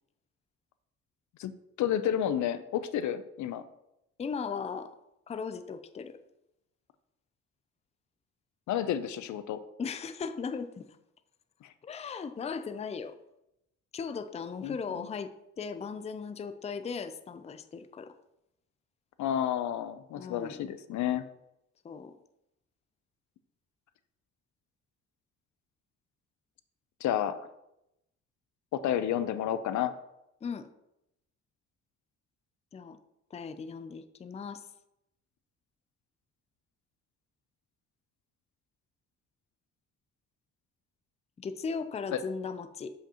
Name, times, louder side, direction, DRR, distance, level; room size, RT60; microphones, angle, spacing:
voice 1, 1.4-3.6 8.7-9.6 11.6-11.7 14.6-14.8 19.2-21.2 27.0-27.4 28.7-29.9 42.1-42.2, left 10 dB, 70° left, 12 dB, 0.5 m, -30 dB
voice 2, 4.2-4.9 5.3-6.2 9.8-10.9 11.8-13.1 13.9-15.3 15.6-18.1 20.1-20.6 21.8-22.1 30.4-30.7 32.7-33.0 33.3-34.6 41.4-42.9, left 5 dB, 20° left, 10 dB, 0.4 m, -37 dB
7.7 x 5.1 x 2.9 m, 0.86 s
cardioid pair, 90°, 30 cm